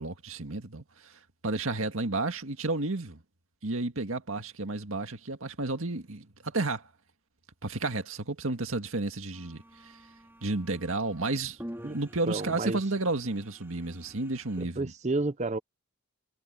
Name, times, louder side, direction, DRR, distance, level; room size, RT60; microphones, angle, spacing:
voice 1, 0.0-3.2 3.6-6.9 7.6-10.0 10.4-11.6 11.9-14.9, right 2 dB, 70° right, 2.0 m, -32 dB
sound 1, 9.3-14.6, equal, 10° right, 4.0 m, -48 dB
voice 2, 12.3-12.8 14.6-15.6, right 2 dB, 35° right, 0.8 m, -30 dB
head